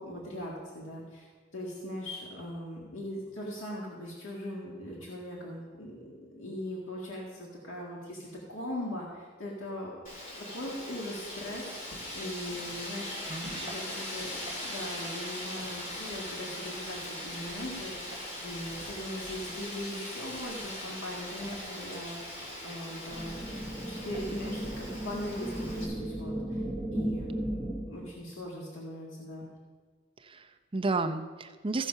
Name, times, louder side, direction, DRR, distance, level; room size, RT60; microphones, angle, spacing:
voice 1, 0.0-9.9 10.5-11.8 12.1-13.3 13.6-14.3 14.6-26.6 26.9-27.4 27.9-29.5, left 1 dB, 75° left, -4 dB, 1.8 m, -40 dB
Wind, 10.1-25.9, left 1 dB, 40° left, 2.9 m, -40 dB
voice 2, 13.3-13.7 30.2-31.9, right 3 dB, 25° right, 7 dB, 0.6 m, -33 dB
sound 1, 23.1-28.1, right 1 dB, 5° left, 1.1 m, -35 dB
15.0 x 5.7 x 5.4 m, 1.4 s
head